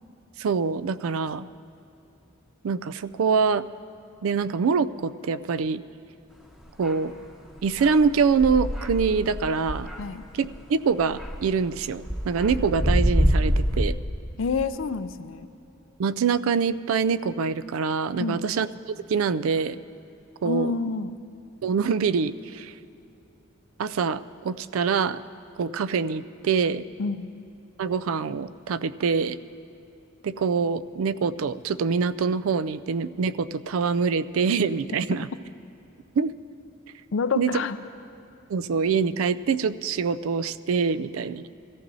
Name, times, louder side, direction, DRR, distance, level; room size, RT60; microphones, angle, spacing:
voice 1, 0.4-1.5 2.6-3.6 4.2-5.8 6.8-7.1 7.6-9.9 10.3-13.9 16.0-19.8 20.4-20.7 21.6-22.7 23.8-25.2 25.6-26.8 27.8-29.4 30.2-35.3 36.2-36.3 37.4-37.5 38.5-41.5, right 5 dB, 85° right, 14 dB, 0.4 m, -25 dB
sound 1, 6.8-6.9 7.6-10.6 11.0-13.8, equal, ahead, 0.8 m, -25 dB
voice 2, 14.4-15.5 18.2-18.5 20.4-21.2 27.0-27.3 37.1-37.8, left 4 dB, 70° left, 12 dB, 0.5 m, -28 dB
21.5 x 14.5 x 2.7 m, 2.7 s
head